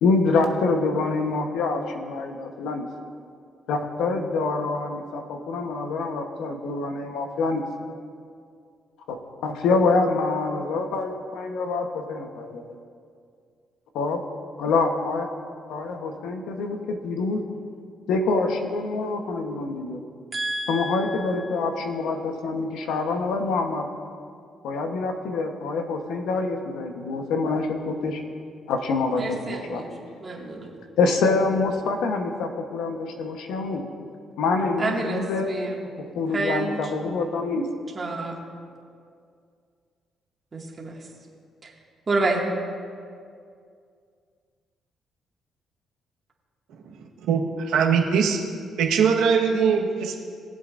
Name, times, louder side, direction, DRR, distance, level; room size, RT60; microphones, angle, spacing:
voice 1, 0.0-2.9 3.7-7.6 9.1-9.2 9.4-12.6 13.9-14.2 14.6-15.3 15.7-17.4 18.1-20.0 20.7-23.9 24.6-28.2 28.7-29.8 31.0-33.8 34.4-35.5 36.0-37.7, left 3 dB, 85° left, 4 dB, 1.1 m, -26 dB
voice 2, 20.3-21.2 29.2-29.9 30.2-30.7 34.8-35.8 36.3-36.8 37.9-38.4 40.5-40.9 41.6-41.7 42.1-42.4, right 2 dB, 35° right, -2 dB, 2.1 m, -28 dB
voice 3, 47.7-48.4 48.8-50.2, right 6 dB, 90° right, 0 dB, 1.4 m, -21 dB
21.5 x 7.7 x 2.6 m, 2.2 s
cardioid pair, 90°, 0 cm